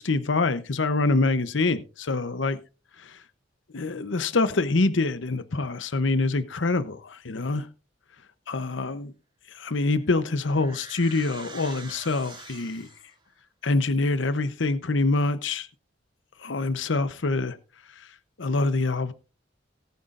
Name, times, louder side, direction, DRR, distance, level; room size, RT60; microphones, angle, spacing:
voice 1, 0.0-2.6 3.7-7.7 8.5-9.1 9.6-12.9 13.6-15.7 16.4-17.6 18.4-19.1, left 3 dB, 80° left, 0.9 m, -25 dB
sound 1, 9.7-13.2, right 3 dB, 25° right, 2.3 m, -45 dB
18.5 x 9.3 x 2.5 m
head